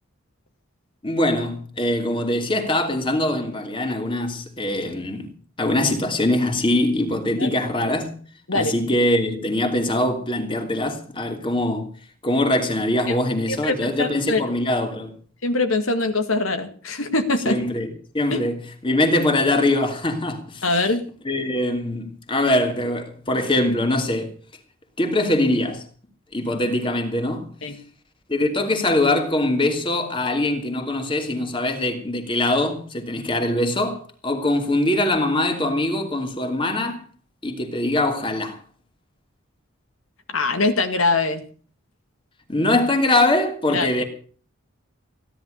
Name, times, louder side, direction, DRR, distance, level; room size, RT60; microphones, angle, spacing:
voice 1, 1.0-5.3 5.6-8.2 8.5-11.9 12.2-15.2 17.4-18.5 18.8-20.6 21.2-24.3 25.0-25.8 26.3-27.5 28.3-37.0 37.4-38.6 42.5-44.0, left 1 dB, 25° left, 2.8 m, -22 dB
voice 2, 13.5-14.4 15.4-17.6 18.3-18.4 20.6-21.0 27.6-27.8 40.3-41.4 43.7-43.9, left 3 dB, 80° left, 2.1 m, -22 dB
16.5 x 11.0 x 6.6 m
head